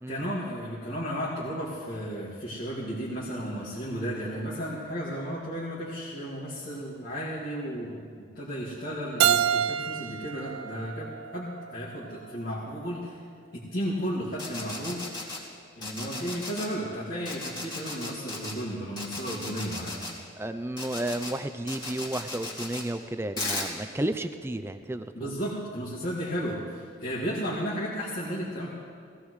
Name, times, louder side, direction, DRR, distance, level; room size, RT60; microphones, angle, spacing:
voice 1, 0.1-8.1 8.4-13.2 13.5-15.0 15.8-20.1 25.2-28.7, equal, 50° left, -8 dB, 2.1 m, -34 dB
Keyboard (musical), 9.2-12.0, right 10 dB, 85° right, 0.4 m, -28 dB
sound 1, 14.3-15.4 15.8-16.7 17.2-18.5 19.0-20.1 20.8-21.3 21.7-22.8 23.4-23.7, left 2 dB, 20° left, 2.4 m, -35 dB
voice 2, 20.4-25.3, right 1 dB, 10° right, 10 dB, 0.4 m, -32 dB
18.0 x 17.0 x 3.2 m, 2.2 s
head